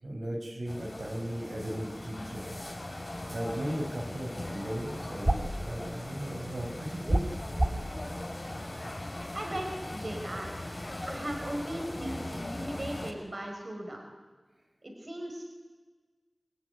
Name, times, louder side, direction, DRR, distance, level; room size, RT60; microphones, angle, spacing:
voice 1, 0.0-2.4 2.8-7.2 8.5-8.6, right 1 dB, 85° right, 0 dB, 6.1 m, -37 dB
sound 1, 0.7-13.1, left 1 dB, 40° left, 5.9 m, -39 dB
sound 2, 5.2-5.6 7.0-7.9, right 1 dB, 30° right, 2.5 m, -26 dB
voice 2, 9.3-10.7 11.1-14.0 14.8-15.4, right 1 dB, 60° right, 1 dB, 5.1 m, -37 dB
27.5 x 19.5 x 9.9 m, 1.4 s
wide cardioid pair, 50°, 0 cm